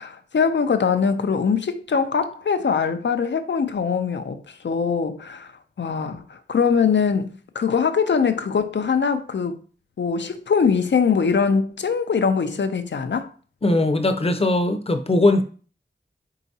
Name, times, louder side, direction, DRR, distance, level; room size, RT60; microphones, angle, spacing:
voice 1, 0.0-5.5 5.8-9.6 10.0-13.3, left 6 dB, 85° left, 0.5 m, -22 dB
voice 2, 13.6-15.4, left 2 dB, 35° left, 0.6 m, -19 dB
4.7 x 3.9 x 2.7 m
wide cardioid pair, 55°, 18 cm